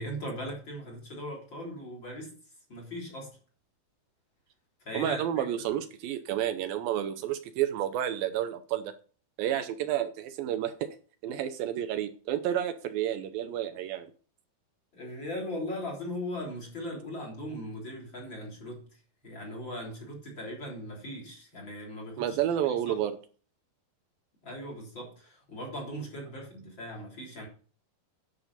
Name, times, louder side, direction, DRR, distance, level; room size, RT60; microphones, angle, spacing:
voice 1, 0.0-2.3 2.7-3.3 4.9-5.5 14.9-18.8 19.2-22.4 22.9-23.0 24.4-27.5, equal, 30° left, 4.0 m, -39 dB
voice 2, 4.9-8.9 9.4-10.9 11.2-14.1 22.2-23.2, right 11 dB, 80° right, 2.4 m, -30 dB
10.5 x 6.9 x 5.5 m
omnidirectional pair, 4.3 m